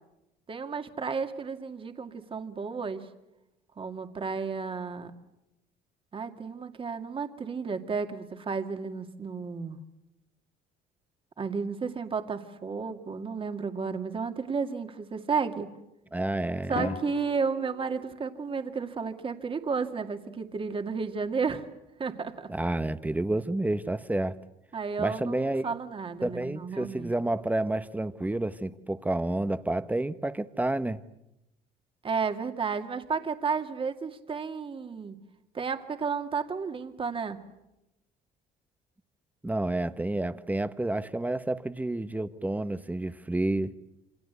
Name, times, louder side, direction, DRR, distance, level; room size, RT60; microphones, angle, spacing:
voice 1, 0.5-3.1 3.8-5.1 6.1-9.8 11.4-15.7 16.7-21.7 22.0-22.5 24.7-27.1 32.0-35.2 35.5-37.4, right 5 dB, 30° right, 7 dB, 2.2 m, -32 dB
voice 2, 16.1-16.9 22.5-24.4 25.0-25.6 26.2-31.0 39.4-43.7, right 2 dB, 10° right, 13 dB, 1.1 m, -29 dB
Drum, 16.8-18.8, left 11 dB, 75° left, 1.6 m, -41 dB
28.0 x 25.5 x 8.2 m, 0.91 s
cardioid pair, 110°, 17 cm